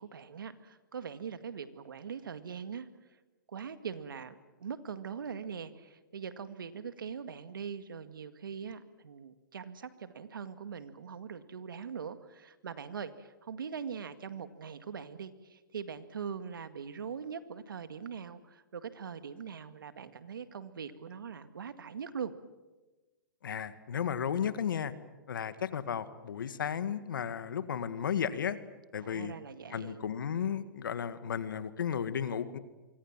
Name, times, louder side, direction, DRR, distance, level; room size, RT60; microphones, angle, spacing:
voice 1, 0.0-2.9 3.5-22.3 29.0-30.0, right 6 dB, 85° right, 11 dB, 2.0 m, -42 dB
voice 2, 23.4-24.9 25.3-28.6 28.9-29.3 29.7-32.6, left 8 dB, 75° left, 12 dB, 1.9 m, -34 dB
26.5 x 24.5 x 7.5 m, 1.2 s
hypercardioid pair, 150°, 11 cm